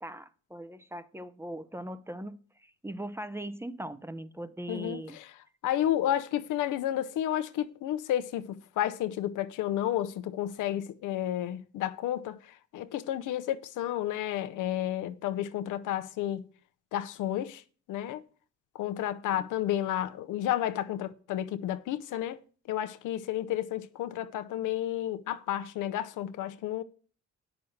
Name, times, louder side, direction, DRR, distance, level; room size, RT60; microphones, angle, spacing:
voice 1, 0.0-2.3 2.6-5.2 19.3-19.5, right 1 dB, 10° right, 0.6 m, -40 dB
voice 2, 4.7-5.3 5.6-12.4 12.7-16.5 16.9-17.6 17.9-18.2 18.7-22.4 22.7-26.8, left 12 dB, 85° left, 0.7 m, -31 dB
9.3 x 6.0 x 6.5 m
cardioid pair, 90°, 30 cm